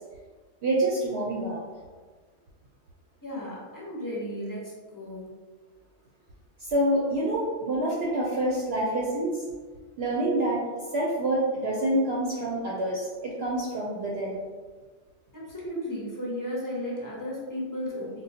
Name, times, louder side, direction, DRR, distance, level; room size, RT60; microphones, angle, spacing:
voice 1, 0.6-1.6 6.6-9.4 10.0-10.6 10.9-14.4, right 1 dB, 65° right, -4 dB, 0.7 m, -27 dB
voice 2, 3.2-5.3 15.3-18.2, equal, 25° left, -6 dB, 0.5 m, -34 dB
3.7 x 2.1 x 2.7 m, 1.5 s
omnidirectional pair, 1.3 m